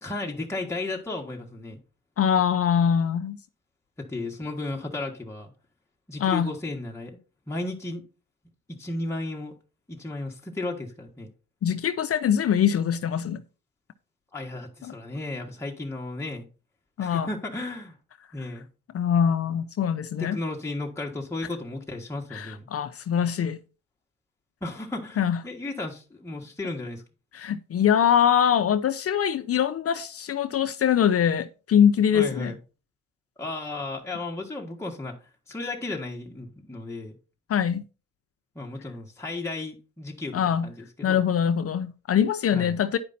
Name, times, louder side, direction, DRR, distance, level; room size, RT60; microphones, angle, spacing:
voice 1, 0.0-1.8 4.0-5.5 6.1-7.1 7.5-8.0 8.7-9.5 9.9-11.3 14.3-16.5 17.0-18.0 18.3-18.7 20.2-22.7 24.6-27.0 32.1-32.6 33.4-35.2 35.5-37.1 38.6-41.2 42.5-42.8, left 2 dB, 10° left, 1.6 m, -34 dB
voice 2, 2.2-3.4 6.2-6.5 11.6-13.4 14.8-14.9 17.0-17.3 18.9-20.4 22.3-23.6 25.2-25.4 27.3-32.5 37.5-37.8 40.3-40.7 41.0-43.0, left 8 dB, 50° left, 0.7 m, -23 dB
9.8 x 5.2 x 4.1 m
cardioid pair, 90°, 30 cm